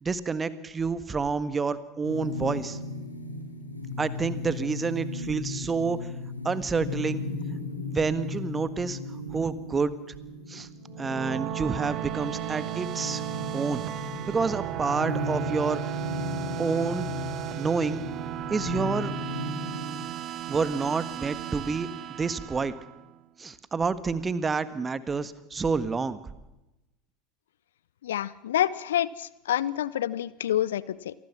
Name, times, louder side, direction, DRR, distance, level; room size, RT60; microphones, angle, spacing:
voice 1, 0.0-2.8 4.0-6.0 6.4-7.2 7.9-9.0 9.3-9.9 10.5-10.7 11.0-13.2 13.5-13.8 14.3-16.0 16.6-17.1 17.6-18.0 18.5-19.1 20.5-22.7 23.4-26.2, right 4 dB, 20° right, 14 dB, 1.6 m, -28 dB
sound 1, 2.0-20.0, left 2 dB, 90° left, 3.1 m, -36 dB
sound 2, 10.8-23.2, right 13 dB, 45° right, 1.2 m, -35 dB
voice 2, 28.0-31.1, left 11 dB, 70° left, 20 dB, 0.7 m, -28 dB
27.5 x 19.5 x 5.9 m, 0.97 s
figure-of-eight pair, 75°, 0 cm